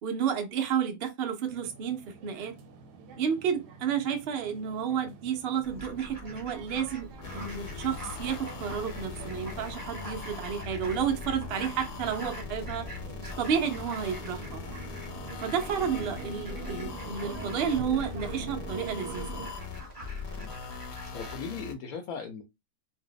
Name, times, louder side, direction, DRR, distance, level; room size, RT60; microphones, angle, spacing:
voice 1, 0.0-2.5 3.2-7.1 7.3-12.9 13.4-14.6 15.4-19.4, right 7 dB, 60° right, 0.6 m, -31 dB
sound 1, 1.4-19.5, right 5 dB, 90° right, 1.2 m, -45 dB
Fowl, 5.6-21.3, right 1 dB, 15° right, 0.9 m, -45 dB
sound 2, 7.2-21.8, left 5 dB, 85° left, 1.2 m, -41 dB
voice 2, 21.1-22.4, left 5 dB, 70° left, 1.0 m, -38 dB
2.7 x 2.1 x 3.8 m
omnidirectional pair, 1.7 m